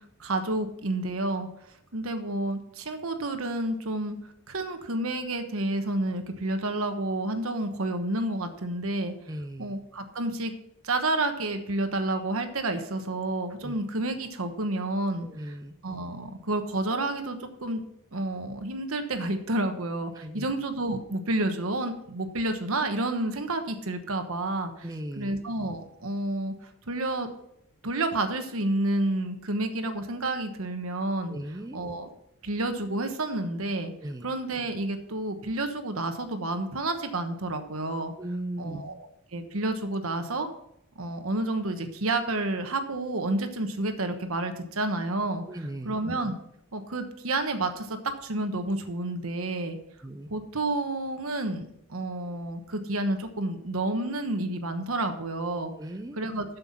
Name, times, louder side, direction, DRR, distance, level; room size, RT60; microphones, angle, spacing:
voice 1, 0.2-1.5 1.9-4.2 4.5-9.1 9.6-10.5 10.8-15.5 15.8-17.8 18.1-24.9 25.2-26.5 26.9-27.3 27.8-31.3 31.7-32.1 32.4-33.9 34.2-38.1 38.6-40.5 41.0-45.4 45.8-46.4 46.7-49.8 50.3-55.7 56.1-56.4, right 2 dB, 80° right, 7 dB, 1.2 m, -30 dB
voice 2, 9.3-9.7 13.6-13.7 15.2-15.8 20.2-20.5 24.8-25.4 31.3-31.8 33.9-34.3 38.2-39.0 45.5-46.0 50.0-50.3 55.8-56.2, right 1 dB, 15° right, 6 dB, 0.5 m, -37 dB
7.8 x 7.0 x 5.7 m, 0.74 s
head